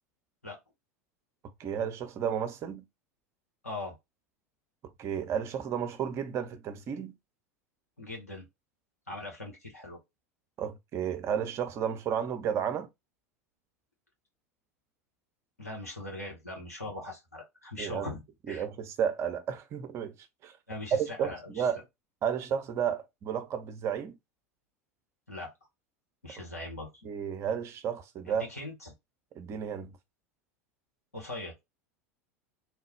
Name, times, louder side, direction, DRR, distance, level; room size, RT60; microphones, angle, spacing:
voice 1, 1.6-2.8 5.0-7.1 10.6-12.9 17.8-18.1 18.5-20.1 20.4-20.5 20.9-21.8 22.2-24.2 27.0-28.5 29.4-29.9, right 8 dB, 35° right, 0.6 m, -32 dB
voice 2, 3.6-4.0 8.0-8.4 9.1-10.0 15.6-18.6 20.7-21.7 25.3-25.5 26.2-27.1 28.4-28.9 31.1-31.5, left 2 dB, 85° left, 1.5 m, -40 dB
3.2 x 2.3 x 3.0 m
figure-of-eight pair, 80°, 8 cm